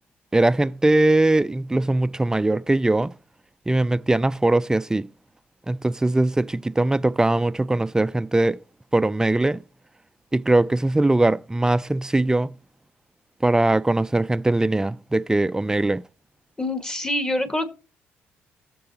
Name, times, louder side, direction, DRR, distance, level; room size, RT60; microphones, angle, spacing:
voice 1, 0.3-3.1 3.7-5.1 5.7-8.6 8.9-9.6 10.3-12.6 13.4-16.0, right 2 dB, 15° right, 0.4 m, -21 dB
voice 2, 16.6-17.7, left 1 dB, 15° left, 1.7 m, -25 dB
18.5 x 6.9 x 2.9 m
hypercardioid pair, 55°, 5 cm